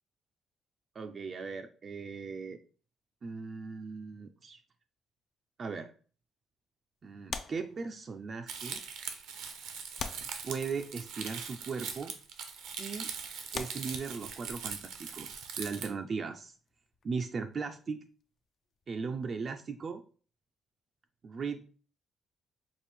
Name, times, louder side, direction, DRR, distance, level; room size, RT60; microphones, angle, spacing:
voice 1, 1.0-2.6 3.2-4.6 5.6-5.9 7.0-8.8 10.4-12.1 12.8-13.1 13.5-16.5 17.0-18.0 18.9-20.0 21.2-21.7, right 5 dB, 45° right, 5 dB, 0.3 m, -38 dB
sound 1, 7.3-8.3 9.1-9.2 10.0-11.0 12.0-12.2 12.9-13.0 13.5-14.7 16.6-18.4 18.7-18.9, left 5 dB, 50° left, 0.4 m, -43 dB
Crumpling crinkling, 8.5-15.9, right 6 dB, 85° right, 0.6 m, -41 dB
4.4 x 2.5 x 3.4 m, 0.40 s
cardioid pair, 95°, 0 cm